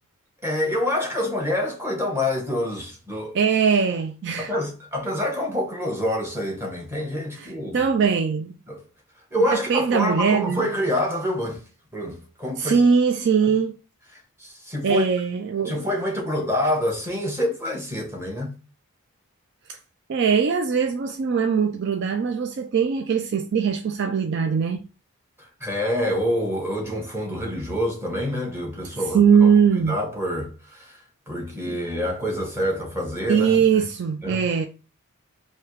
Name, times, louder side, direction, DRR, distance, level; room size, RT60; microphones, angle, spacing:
voice 1, 0.4-3.4 4.4-7.8 8.7-8.8 9.3-11.6 11.9-12.8 14.4-15.0 15.6-18.6 25.4-33.9 34.2-34.4, left 1 dB, 10° right, 1.1 m, -27 dB
voice 2, 3.3-4.5 7.3-8.5 9.4-10.7 12.6-13.7 14.8-15.8 19.7-19.8 20.1-24.8 29.1-30.0 31.6-31.8 33.3-34.7, right 6 dB, 50° right, 0.4 m, -21 dB
3.3 x 2.8 x 4.5 m
head